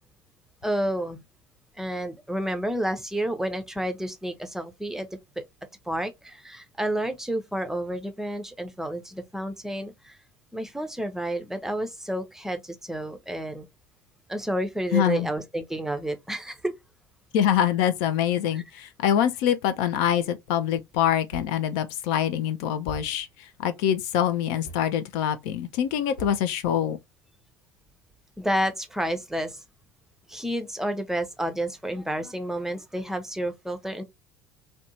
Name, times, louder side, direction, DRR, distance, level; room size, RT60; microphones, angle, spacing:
voice 1, 0.6-1.2 1.8-5.1 5.4-5.5 5.9-10.2 10.5-13.7 14.3-16.7 18.5-18.6 28.4-29.6 30.3-34.0, right 1 dB, 5° right, 0.5 m, -30 dB
voice 2, 14.9-15.3 17.3-27.0, left 10 dB, 60° left, 0.4 m, -25 dB
sound 1, 21.3-21.7 22.2-22.3 22.9-23.3 24.6-24.9 26.2-26.4, left 1 dB, 85° left, 1.0 m, -41 dB
2.5 x 2.2 x 2.7 m
figure-of-eight pair, 65°, 10 cm